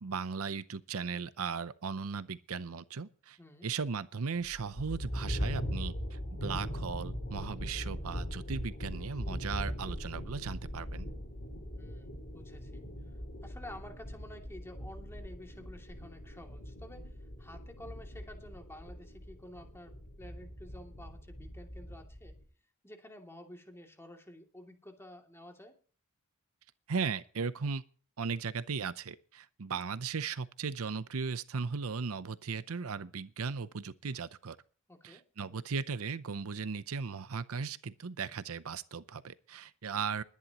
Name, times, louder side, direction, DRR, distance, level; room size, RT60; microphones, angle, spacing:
voice 1, 0.0-11.1 26.9-27.8 28.2-34.6 35.0-40.2, right 5 dB, 70° right, 0.7 m, -37 dB
voice 2, 3.4-3.7 11.8-12.8 13.4-17.1 17.4-19.9 20.2-22.3 22.8-25.7 34.9-35.2, left 1 dB, 10° left, 2.6 m, -51 dB
sound 1, 4.4-22.4, equal, 45° left, 4.8 m, -40 dB
21.0 x 10.5 x 3.0 m
head